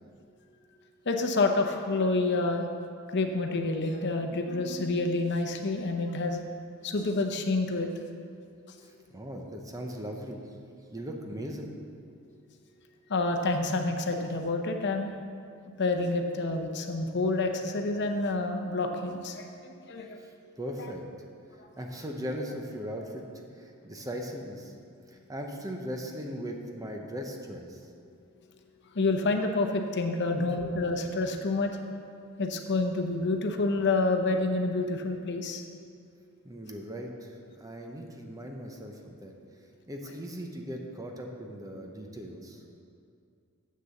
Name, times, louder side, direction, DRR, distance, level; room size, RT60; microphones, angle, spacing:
voice 1, 1.1-2.6 3.1-6.4 6.8-7.9 13.1-15.1 15.8-20.2 21.6-21.7 28.9-31.8 32.4-35.6, left 3 dB, 55° left, 5 dB, 0.7 m, -28 dB
voice 2, 8.8-10.4 10.9-11.7 20.2-21.0 21.8-23.2 23.5-24.7 25.1-27.9 36.4-39.3 39.9-42.6, equal, 15° right, 2 dB, 0.8 m, -39 dB
7.6 x 6.7 x 6.9 m, 2.4 s
head